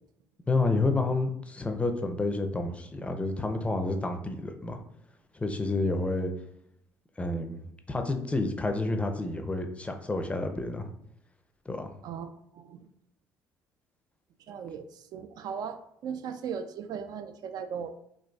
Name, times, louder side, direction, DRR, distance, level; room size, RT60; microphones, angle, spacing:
voice 1, 0.5-4.8 5.3-6.3 7.2-7.6 7.9-10.9 11.7-11.9, left 2 dB, 15° left, 6 dB, 0.4 m, -29 dB
voice 2, 14.5-14.9 15.1-15.8 16.0-17.9, right 7 dB, 60° right, 8 dB, 0.3 m, -37 dB
3.9 x 2.4 x 2.3 m, 0.74 s
supercardioid pair, 80°, 8 cm